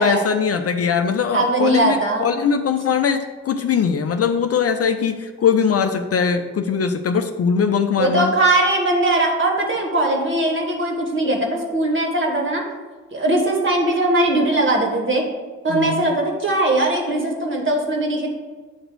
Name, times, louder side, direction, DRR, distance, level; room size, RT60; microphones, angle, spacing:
voice 1, 0.0-8.3 15.7-16.1, left 6 dB, 45° left, 7 dB, 0.6 m, -21 dB
voice 2, 1.3-2.3 8.0-12.6 13.1-15.2 15.6-18.3, right 1 dB, 35° right, 1 dB, 2.0 m, -20 dB
8.8 x 3.0 x 6.4 m, 1.4 s
hypercardioid pair, 50°, 35 cm